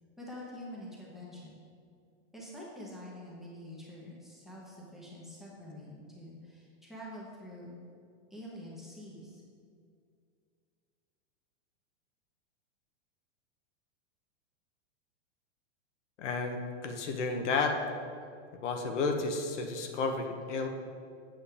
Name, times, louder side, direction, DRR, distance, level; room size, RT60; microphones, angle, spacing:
voice 1, 0.2-1.6 2.3-7.7 8.3-9.4, left 1 dB, ahead, -6 dB, 0.9 m, -46 dB
voice 2, 16.2-17.8 18.6-20.7, left 4 dB, 85° left, 4 dB, 1.0 m, -32 dB
7.8 x 6.9 x 3.4 m, 2.3 s
supercardioid pair, 160°, 35 cm